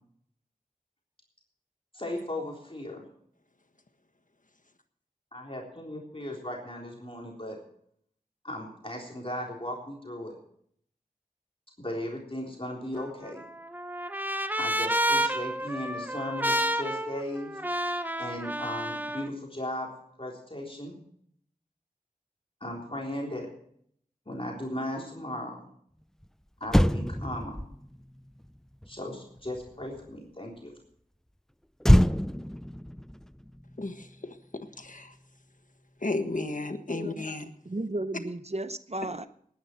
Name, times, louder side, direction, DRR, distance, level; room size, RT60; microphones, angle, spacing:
voice 1, 1.9-3.0 5.3-7.6 8.4-10.3 11.8-13.4 14.6-17.5 18.2-19.9 20.2-20.9 22.6-23.5 24.3-25.7 26.6-27.6 28.9-30.7, left 1 dB, 40° left, -1 dB, 3.6 m, -36 dB
Trumpet, 13.0-19.3, right 1 dB, 10° right, 1.0 m, -30 dB
Motor vehicle (road), 26.2-26.3 26.6-30.2 31.8-34.4 34.7-34.9, equal, 5° left, 0.4 m, -27 dB
voice 2, 33.8-35.2 36.0-37.5, left 2 dB, 65° left, 7 dB, 1.5 m, -34 dB
voice 3, 36.9-37.3 37.7-39.3, right 2 dB, 45° right, 12 dB, 0.8 m, -34 dB
19.5 x 9.8 x 4.5 m, 0.65 s
wide cardioid pair, 40°, 15 cm